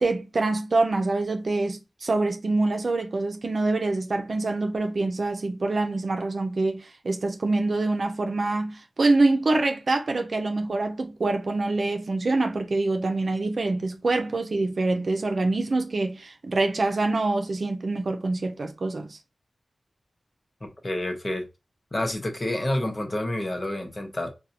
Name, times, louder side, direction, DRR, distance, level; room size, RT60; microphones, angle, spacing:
voice 1, 0.0-19.2, right 2 dB, 65° right, 0.6 m, -25 dB
voice 2, 20.6-21.4 21.9-24.3, left 1 dB, 35° left, 1.0 m, -29 dB
3.9 x 2.3 x 2.8 m
cardioid pair, 55°, 0 cm